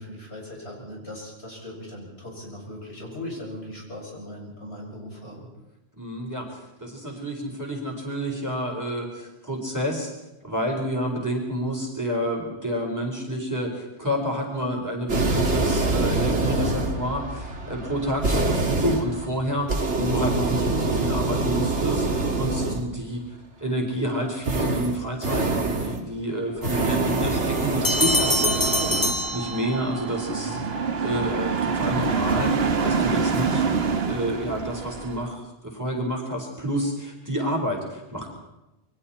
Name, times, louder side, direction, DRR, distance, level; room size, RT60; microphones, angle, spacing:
voice 1, 0.0-5.5 30.3-30.7, left 1 dB, 70° left, -3 dB, 8.0 m, -39 dB
voice 2, 6.0-10.1 10.4-19.7 20.0-23.2 23.6-30.6 31.0-32.6 32.8-38.3, equal, 15° right, -1 dB, 4.6 m, -29 dB
sound 1, 15.1-23.0 24.4-26.0 26.5-29.1, right 2 dB, 80° right, 2.5 m, -25 dB
sound 2, 27.8-30.1, left 1 dB, 20° left, 1.8 m, -24 dB
sound 3, 27.9-35.3, right 5 dB, 65° right, 1.5 m, -27 dB
28.5 x 23.5 x 4.4 m, 0.97 s
omnidirectional pair, 1.2 m